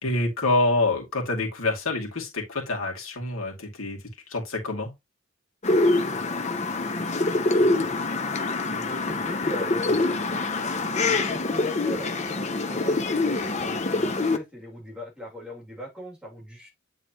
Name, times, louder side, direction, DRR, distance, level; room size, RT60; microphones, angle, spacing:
voice 1, 0.0-4.0 4.3-4.9, left 2 dB, 80° left, 2.4 m, -26 dB
sound 1, 5.6-14.4, left 2 dB, 35° left, 0.7 m, -25 dB
voice 2, 5.7-8.0 8.7-16.7, left 1 dB, 5° right, 2.5 m, -40 dB
9.0 x 4.0 x 2.9 m
head